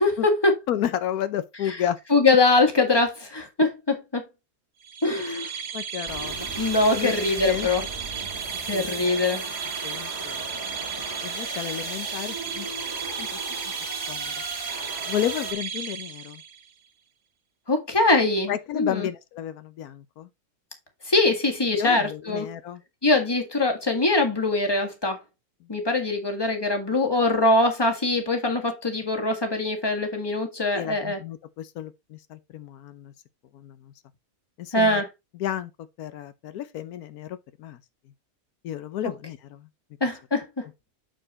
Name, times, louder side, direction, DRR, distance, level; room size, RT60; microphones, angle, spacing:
voice 1, 0.0-0.5 2.1-3.7 4.1-4.2 5.0-5.5 6.6-7.8 8.7-9.4 17.7-19.1 21.0-22.5 23.0-25.2 25.7-31.2 34.7-35.1 40.0-40.4, left 2 dB, 15° left, 1.7 m, -22 dB
voice 2, 0.7-2.0 5.2-5.4 5.7-6.5 6.9-7.1 7.4-7.9 8.7-8.9 9.8-10.6 11.0-12.7 13.0-13.4 14.1-14.4 15.1-16.4 18.5-20.3 21.7-22.8 25.6-25.7 26.9-27.0 30.7-33.1 33.5-33.9 34.6-35.0 35.3-35.7 36.0-37.8 38.6-39.7, left 11 dB, 85° left, 1.2 m, -32 dB
sound 1, 4.8-16.7, right 7 dB, 60° right, 1.0 m, -34 dB
sound 2, 6.1-15.5, right 2 dB, 15° right, 1.7 m, -37 dB
7.7 x 4.5 x 4.1 m
omnidirectional pair, 1.5 m